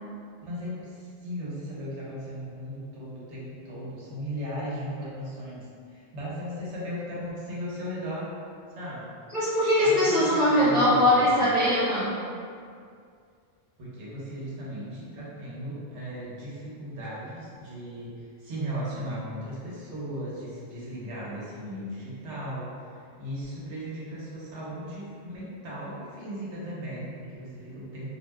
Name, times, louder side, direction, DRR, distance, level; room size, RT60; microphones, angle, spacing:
voice 1, 0.4-8.3 8.8-9.1 9.8-11.5 13.8-28.2, equal, 85° right, -7 dB, 1.1 m, -37 dB
voice 2, 9.3-12.1, left 1 dB, 45° right, -13 dB, 1.0 m, -21 dB
2.6 x 2.1 x 3.4 m, 2.3 s
omnidirectional pair, 1.1 m